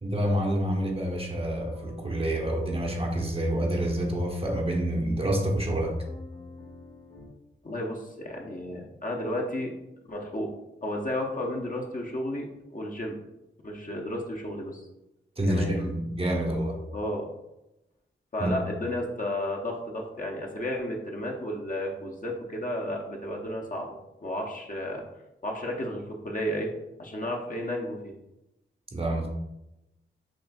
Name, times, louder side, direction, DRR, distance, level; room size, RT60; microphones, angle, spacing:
voice 1, 0.0-6.0 15.4-16.8 18.4-18.6 28.9-29.3, right 1 dB, 25° right, 1 dB, 0.8 m, -28 dB
sound 1, 1.6-7.3, left 3 dB, 85° left, 1.1 m, -41 dB
voice 2, 7.6-9.7 10.1-10.5 10.8-13.2 13.6-14.9 15.5-15.8 16.9-17.3 18.3-24.0 24.2-25.0 25.4-26.7 27.0-28.1, left 1 dB, 40° left, 0 dB, 0.8 m, -32 dB
6.0 x 2.4 x 2.3 m, 0.91 s
cardioid pair, 55°, 21 cm